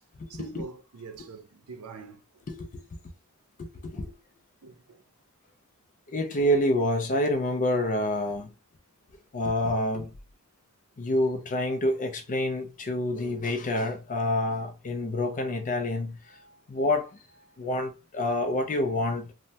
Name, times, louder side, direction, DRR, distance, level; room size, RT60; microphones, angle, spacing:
voice 1, 0.3-2.4 4.6-5.0 16.3-16.6 17.5-17.6, right 4 dB, 80° right, 0.6 m, -45 dB
voice 2, 2.5-2.8 3.6-4.1 6.1-8.5 9.3-10.1 11.0-16.4 16.7-17.1 17.6-19.3, left 1 dB, 35° left, 0.4 m, -27 dB
3.2 x 2.1 x 2.7 m
head